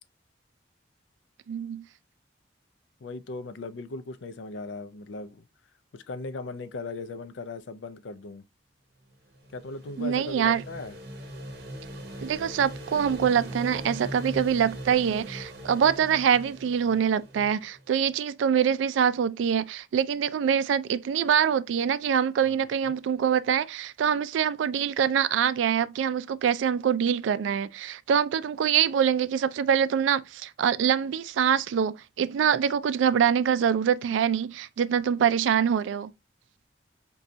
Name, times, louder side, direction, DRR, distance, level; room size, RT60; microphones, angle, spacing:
voice 1, 1.5-1.9 10.0-10.6 12.2-36.1, right 8 dB, 85° right, 0.3 m, -24 dB
voice 2, 3.0-5.4 5.9-8.4 9.5-11.0 22.4-22.6, left 3 dB, 80° left, 0.4 m, -38 dB
sound 1, 9.1-17.9, equal, 55° right, 0.8 m, -40 dB
4.9 x 2.3 x 2.6 m
head